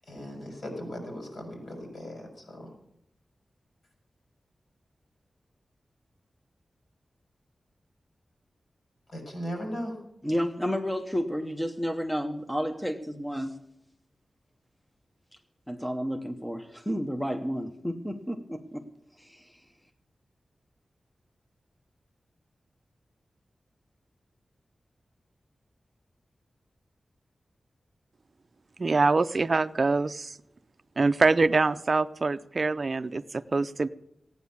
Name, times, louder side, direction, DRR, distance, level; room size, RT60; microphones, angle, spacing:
voice 1, 0.1-2.7 9.1-10.0, equal, 60° left, 1 dB, 5.5 m, -37 dB
voice 2, 10.2-13.6 15.7-18.9 19.2-19.6, equal, 5° left, 6 dB, 0.8 m, -31 dB
voice 3, 28.8-30.4 31.0-33.9, right 3 dB, 45° right, 12 dB, 0.4 m, -24 dB
16.0 x 9.3 x 7.1 m, 0.81 s
wide cardioid pair, 120°, 0 cm